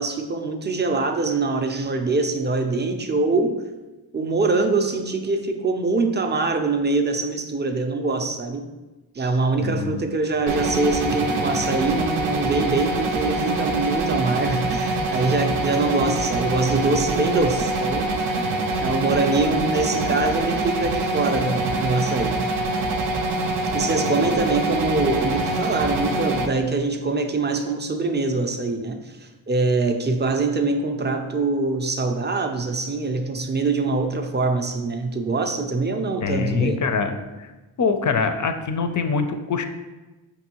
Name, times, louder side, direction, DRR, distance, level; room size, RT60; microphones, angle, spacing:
voice 1, 0.0-3.6 4.1-8.6 9.2-18.5 18.8-22.4 23.7-36.8, right 3 dB, 25° right, 6 dB, 0.5 m, -24 dB
voice 2, 9.6-10.0 36.2-37.2 37.8-39.6, left 5 dB, 40° left, 7 dB, 0.4 m, -24 dB
sound 1, 10.5-26.5, right 2 dB, 70° right, 0.6 m, -25 dB
5.2 x 2.6 x 2.9 m, 1.1 s
cardioid pair, 45°, 48 cm